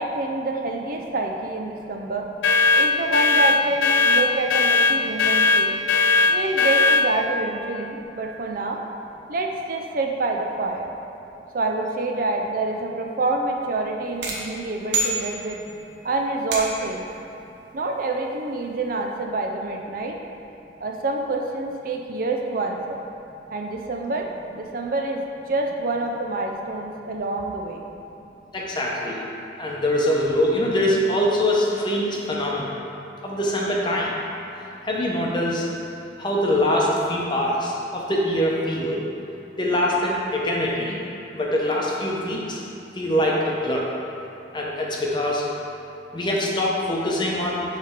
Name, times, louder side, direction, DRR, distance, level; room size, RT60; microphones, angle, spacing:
voice 1, 0.0-2.3 2.8-5.8 6.3-8.8 9.3-10.9 11.5-15.6 16.0-17.1 17.7-20.2 20.8-23.0 23.5-24.3 24.5-27.8, right 2 dB, 50° right, 1 dB, 0.5 m, -27 dB
sound 1, 2.4-7.1, left 3 dB, 80° left, 0.4 m, -18 dB
sound 2, 14.2-15.8 16.5-17.0, right 3 dB, 70° right, 1.0 m, -28 dB
voice 2, 28.5-29.2 29.6-32.7 33.2-34.2 34.8-35.7 36.2-39.0 39.6-41.0 41.3-42.6 43.0-43.9 44.5-45.5 46.1-47.6, left 1 dB, 25° left, -3 dB, 0.8 m, -23 dB
7.3 x 3.3 x 5.0 m, 2.8 s
head